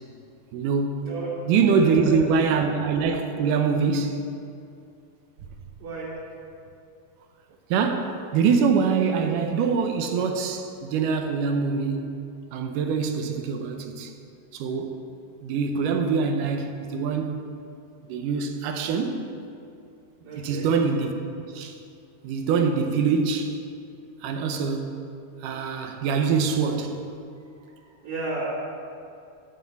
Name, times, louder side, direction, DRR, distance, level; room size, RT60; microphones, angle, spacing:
voice 1, 0.5-1.1 1.5-4.2 7.7-12.1 12.5-14.1 14.5-15.0 15.4-17.5 18.1-19.2 20.4-21.1 21.5-21.8 22.2-23.6 24.2-24.9 25.4-27.0, right 5 dB, 75° right, 5 dB, 2.0 m, -24 dB
voice 2, 1.7-2.1 5.8-6.1 20.2-20.7 27.4-28.4, right 3 dB, 60° right, -9 dB, 3.7 m, -34 dB
9.3 x 5.5 x 8.1 m, 2.5 s
omnidirectional pair, 4.2 m